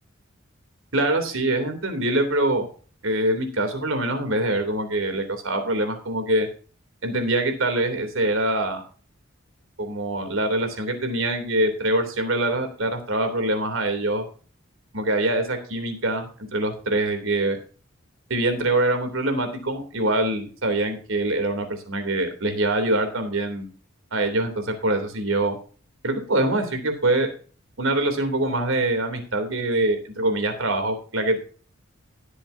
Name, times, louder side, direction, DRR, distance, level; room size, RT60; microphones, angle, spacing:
voice 1, 0.9-2.6 3.0-6.5 7.0-8.8 9.8-14.2 14.9-17.6 18.3-23.7 24.1-25.6 26.0-27.3 27.8-31.4, right 1 dB, 75° right, 6 dB, 3.2 m, -24 dB
18.5 x 8.2 x 2.8 m, 0.39 s
head